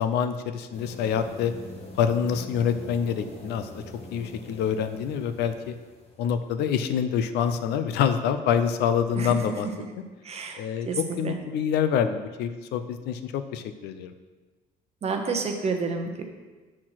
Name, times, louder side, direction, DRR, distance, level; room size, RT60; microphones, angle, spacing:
voice 1, 0.0-1.5 2.0-3.7 4.1-5.7 6.2-9.7 10.6-14.1, left 8 dB, 80° left, 10 dB, 0.6 m, -26 dB
sound 1, 0.7-6.7, left 1 dB, 40° left, 1.6 m, -44 dB
voice 2, 10.2-10.6 10.9-11.0 11.2-11.4 15.0-16.2, right 4 dB, 40° right, 4 dB, 1.0 m, -29 dB
6.4 x 4.3 x 5.8 m, 1.3 s
cardioid pair, 110°, 17 cm